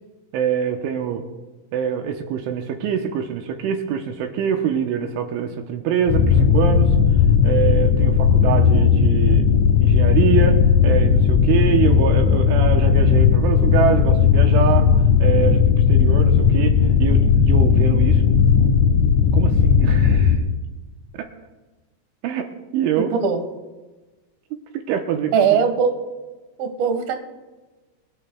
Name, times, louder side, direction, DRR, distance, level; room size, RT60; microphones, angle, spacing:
voice 1, 0.3-1.2 1.7-6.9 7.4-9.5 9.8-10.6 10.8-14.9 15.2-15.6 15.9-16.7 17.0-18.2 19.3-20.4 21.1-21.3 22.2-23.1 24.7-25.6, right 8 dB, 80° right, 4 dB, 3.3 m, -24 dB
sound 1, 6.1-20.4, left 6 dB, 70° left, 1.8 m, -16 dB
voice 2, 25.3-26.1 26.6-27.2, right 6 dB, 60° right, 6 dB, 2.7 m, -20 dB
24.5 x 12.5 x 2.3 m, 1.2 s
omnidirectional pair, 5.6 m